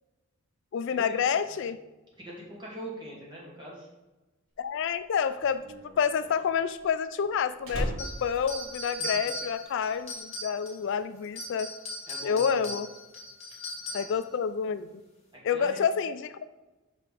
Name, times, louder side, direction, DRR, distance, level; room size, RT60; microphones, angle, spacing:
voice 1, 0.7-1.8 4.6-11.7 12.2-12.9 13.9-15.0 15.4-16.4, left 7 dB, 60° left, 12 dB, 0.3 m, -28 dB
voice 2, 2.2-3.9 9.0-9.3 12.1-12.8 13.9-14.1 15.5-15.8, right 1 dB, 25° right, -5 dB, 2.4 m, -42 dB
Slam, 4.7-9.5 9.7-10.2, equal, 70° right, 1.8 m, -37 dB
sound 1, 8.0-10.9 11.2-14.2, left 1 dB, 30° left, 2.1 m, -38 dB
5.7 x 4.8 x 5.1 m, 1.1 s
head